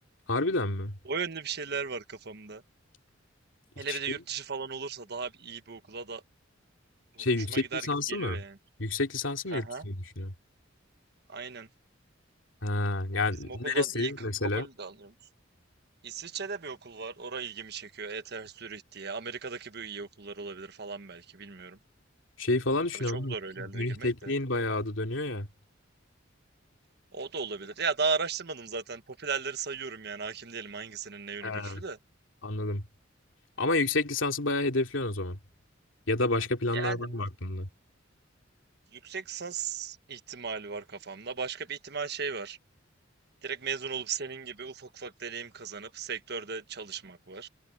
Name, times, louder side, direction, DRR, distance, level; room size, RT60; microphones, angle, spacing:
voice 1, 0.3-1.0 3.8-4.0 7.2-8.4 8.8-10.3 12.6-14.7 22.4-25.5 31.4-31.8 32.4-32.8 33.6-35.4 36.1-37.7, left 2 dB, 80° left, 2.6 m, -29 dB
voice 2, 1.0-2.6 3.8-6.2 7.1-8.6 9.5-9.8 11.3-11.7 13.4-14.1 14.4-15.1 16.0-21.8 22.9-24.3 27.1-32.0 36.7-37.2 38.9-42.6 43.4-47.5, right 5 dB, 60° right, 1.3 m, -36 dB
head